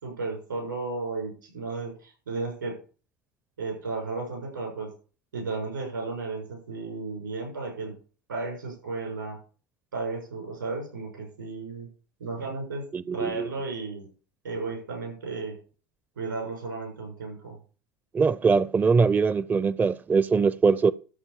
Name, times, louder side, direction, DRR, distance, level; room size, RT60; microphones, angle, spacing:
voice 1, 0.0-2.7 3.6-4.9 5.3-7.9 8.3-9.4 9.9-11.9 12.2-12.8 13.1-14.1 14.4-15.6 16.1-17.6, right 3 dB, 85° right, 6.7 m, -34 dB
voice 2, 12.9-13.5 18.1-20.9, right 5 dB, 15° right, 0.4 m, -22 dB
13.0 x 4.4 x 8.5 m
hypercardioid pair, 75°, 10 cm